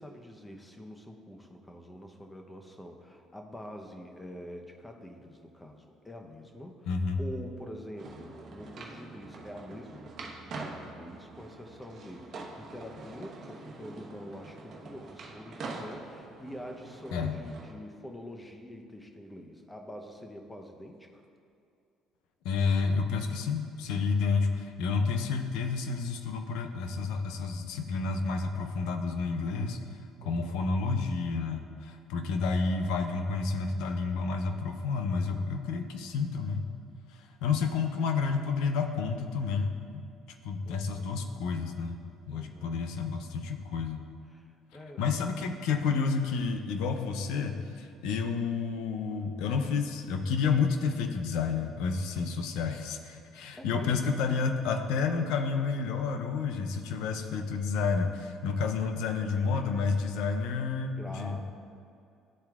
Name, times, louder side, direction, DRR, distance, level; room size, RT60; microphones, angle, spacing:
voice 1, 0.0-21.2 30.2-30.6 40.7-41.0 42.3-42.7 44.3-45.0 49.1-49.2 53.5-54.2 60.9-61.4, equal, 10° left, 3 dB, 0.8 m, -46 dB
voice 2, 6.9-7.2 17.1-17.3 22.4-29.8 30.2-36.7 37.1-40.0 40.4-42.0 42.3-44.0 45.0-61.4, left 5 dB, 80° left, 6 dB, 0.6 m, -30 dB
sound 1, 8.0-17.7, right 3 dB, 50° right, 1.0 m, -44 dB
11.5 x 4.4 x 2.4 m, 2.6 s
cardioid pair, 100°, 0 cm